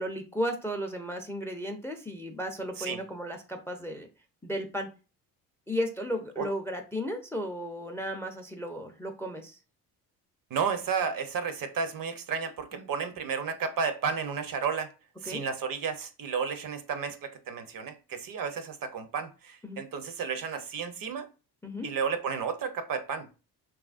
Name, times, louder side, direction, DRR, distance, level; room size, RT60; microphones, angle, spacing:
voice 1, 0.0-4.1 4.4-4.9 5.7-9.6 12.7-12.9 15.2-15.4 19.6-19.8 21.6-21.9, equal, 5° left, 0.4 m, -34 dB
voice 2, 10.5-14.9 15.2-21.2 21.8-23.3, right 6 dB, 50° right, 0.6 m, -32 dB
3.0 x 2.4 x 2.4 m
supercardioid pair, 65°, 45 cm